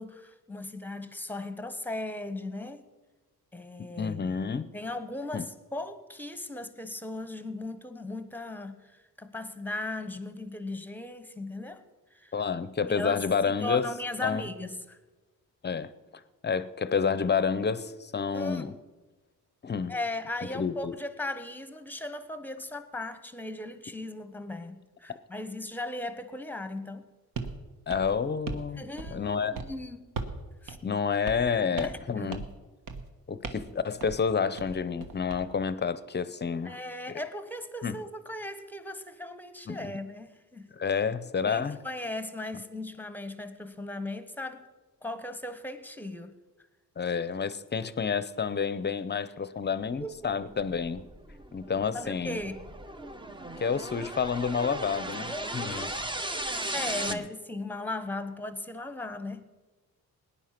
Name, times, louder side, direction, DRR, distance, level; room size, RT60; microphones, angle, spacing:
voice 1, 0.0-2.8 3.5-4.4 4.7-11.8 12.1-12.3 12.9-15.0 18.3-18.8 19.9-27.1 28.8-30.1 30.6-30.8 31.8-32.4 36.6-40.7 41.4-44.7 45.0-46.4 50.0-50.2 51.9-52.7 55.3-55.5 56.7-59.5, left 2 dB, 5° left, 11 dB, 1.0 m, -37 dB
voice 2, 4.0-4.7 5.3-5.5 12.3-13.8 14.2-14.5 15.6-15.9 16.4-18.7 19.6-19.9 20.5-20.9 27.9-28.8 29.1-29.6 30.8-32.4 33.3-36.8 37.8-38.0 39.7-40.0 40.8-41.8 47.0-51.1 51.5-52.4 53.6-55.9 57.1-57.2, left 6 dB, 30° left, 15 dB, 0.7 m, -29 dB
sound 1, 27.4-27.6 27.9-28.7 29.0-29.3 29.5-29.7 30.2-30.4 30.7-30.8 31.3-31.5 31.8-32.0 32.3-32.6 32.9-33.1 33.4-33.7 34.0-34.2 34.6-35.4, right 4 dB, 60° right, 1.4 m, -38 dB
sound 2, 50.2-57.1, right 1 dB, 15° right, 0.7 m, -37 dB
18.5 x 10.0 x 5.9 m, 1.2 s
cardioid pair, 115°, 36 cm